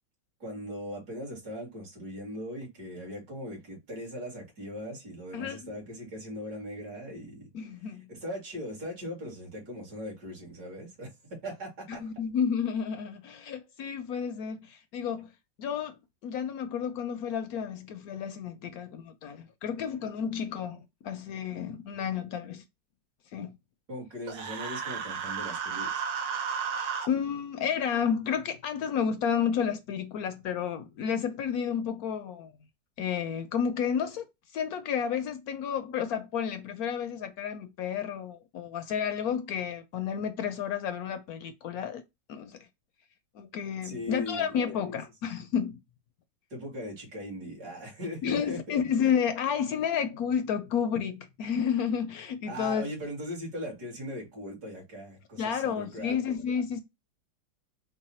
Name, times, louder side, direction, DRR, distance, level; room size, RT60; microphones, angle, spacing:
voice 1, 0.4-7.5 8.1-12.0 23.9-26.0 43.8-45.0 46.5-48.8 52.5-56.1, equal, 65° right, 2.5 m, -39 dB
voice 2, 5.3-5.7 7.5-8.1 11.9-15.3 15.6-22.6 23.3-23.6 27.1-32.6 33.0-42.0 42.3-42.7 43.3-45.8 48.2-52.9 55.4-56.8, left 7 dB, 70° left, 0.9 m, -31 dB
Human voice, 24.3-27.1, right 6 dB, 80° right, 1.5 m, -33 dB
4.6 x 2.2 x 4.2 m
omnidirectional pair, 1.9 m